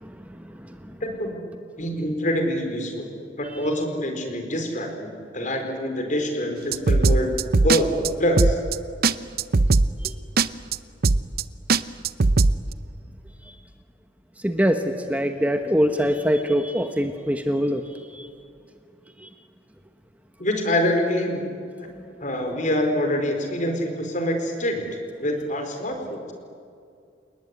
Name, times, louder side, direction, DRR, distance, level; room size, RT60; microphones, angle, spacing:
voice 1, 0.0-1.0 3.5-3.6 10.0-10.1 13.4-13.6 14.4-18.3 19.2-19.3 21.9-22.0, equal, 10° right, 6 dB, 1.1 m, -25 dB
voice 2, 1.0-1.4 1.8-3.1 3.4-5.1 5.3-7.3 7.6-8.6 20.4-21.6 22.2-24.8 25.2-26.3, left 1 dB, 45° left, 5 dB, 4.5 m, -25 dB
sound 1, 6.7-7.8 8.0-8.1 8.4-8.8 9.0-9.1 9.4-10.1 10.4-10.8 11.0-11.4 11.7-12.5, right 3 dB, 55° right, 0.7 m, -18 dB
29.0 x 19.5 x 9.7 m, 2.4 s
head